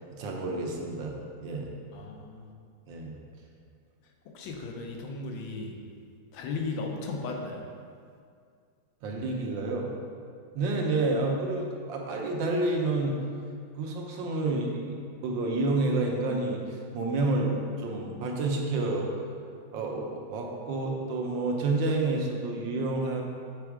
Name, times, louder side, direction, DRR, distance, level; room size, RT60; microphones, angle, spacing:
voice 1, 0.1-1.7 2.9-3.2 9.0-9.9 10.5-13.2 13.8-19.1 19.7-23.2, right 2 dB, 75° right, 0 dB, 1.5 m, -29 dB
voice 2, 1.9-2.5 4.3-5.7 6.3-7.6, left 3 dB, 90° left, 2 dB, 1.5 m, -36 dB
6.9 x 3.5 x 4.7 m, 2.2 s
omnidirectional pair, 2.1 m